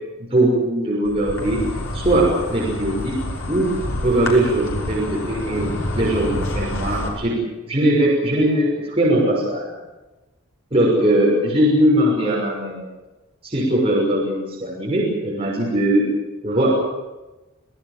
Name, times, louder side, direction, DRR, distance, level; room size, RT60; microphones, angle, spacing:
voice 1, 0.2-1.6 1.9-3.2 3.5-3.7 4.0-5.7 6.0-7.4 7.7-9.7 10.7-12.9 13.4-16.1 16.4-16.7, right 1 dB, 30° right, -4 dB, 6.1 m, -20 dB
Insect, 1.0-7.1, left 1 dB, 75° left, 6.0 m, -28 dB
27.5 x 18.0 x 7.6 m, 1.1 s
head